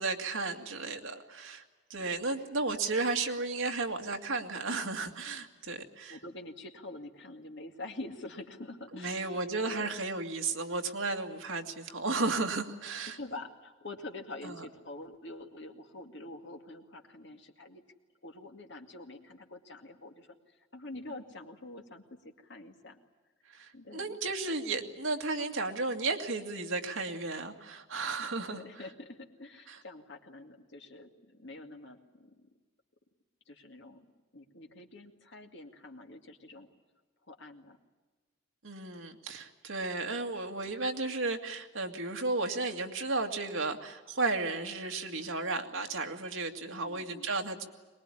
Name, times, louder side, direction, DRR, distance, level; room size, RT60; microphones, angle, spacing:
voice 1, 0.0-1.6 1.9-6.2 8.9-13.2 14.4-14.5 23.5-28.6 29.7-29.8 38.6-47.6, right 3 dB, 75° right, 4 dB, 2.1 m, -34 dB
voice 2, 6.1-9.9 13.1-17.8 18.2-23.0 23.7-24.2 28.2-32.5 33.5-34.1 34.3-36.7 37.3-37.8 46.8-47.3, left 2 dB, 60° left, 4 dB, 2.3 m, -46 dB
23.0 x 20.5 x 9.9 m, 1.3 s
head